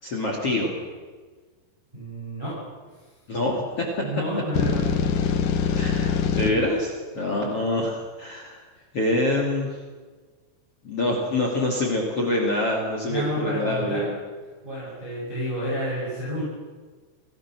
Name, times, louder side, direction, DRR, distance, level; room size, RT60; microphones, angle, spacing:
voice 1, 0.0-0.8 3.3-4.0 5.7-8.6 8.9-9.7 10.8-14.1, left 1 dB, 35° left, 0 dB, 2.9 m, -25 dB
voice 2, 1.9-2.6 4.0-5.1 13.1-14.1 14.6-16.4, equal, 10° right, -7 dB, 6.9 m, -30 dB
sound 1, 4.6-6.5, left 7 dB, 60° left, 2.3 m, -23 dB
26.5 x 18.0 x 6.2 m, 1.4 s
omnidirectional pair, 5.6 m